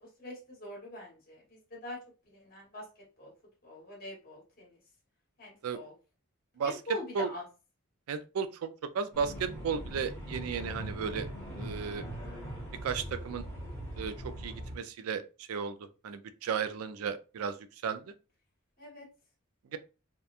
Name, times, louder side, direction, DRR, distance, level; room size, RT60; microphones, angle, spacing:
voice 1, 0.0-2.0 2.3-2.9 3.2-3.3 3.6-4.8 5.4-5.9 6.6-7.4 18.8-19.1 19.7-19.8, left 1 dB, 40° left, 1.2 m, -44 dB
voice 2, 8.1-11.3 11.6-12.1 12.8-13.4 14.0-15.8 16.0-17.6 17.8-18.0 19.7-19.8, right 6 dB, 85° right, 0.3 m, -34 dB
sound 1, 9.1-14.8, right 1 dB, 10° left, 0.9 m, -41 dB
2.8 x 2.2 x 2.4 m
head